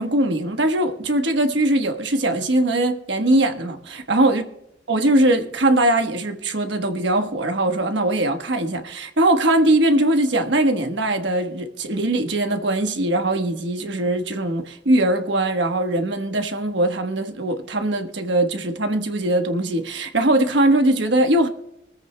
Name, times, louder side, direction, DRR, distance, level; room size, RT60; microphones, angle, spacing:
voice 1, 0.0-4.4 4.9-21.5, right 1 dB, 80° right, 1.2 m, -21 dB
23.0 x 14.5 x 2.2 m
head